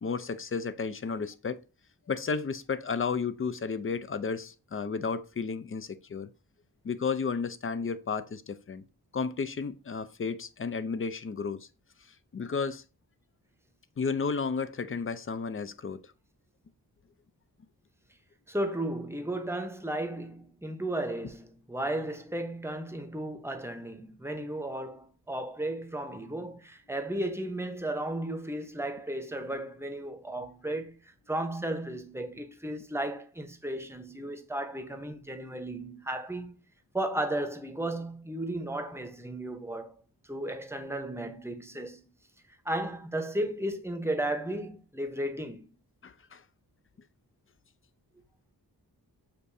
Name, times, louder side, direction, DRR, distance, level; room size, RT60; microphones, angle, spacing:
voice 1, 0.0-1.6 2.1-6.3 6.8-8.8 9.1-11.7 12.3-12.8 14.0-16.0 46.0-46.4, left 5 dB, 35° left, 0.4 m, -32 dB
voice 2, 18.5-30.9 31.3-36.6 36.9-39.9 40.3-42.1 42.6-45.7, right 1 dB, 5° right, 0.8 m, -34 dB
6.6 x 2.6 x 2.6 m
wide cardioid pair, 60°, 40 cm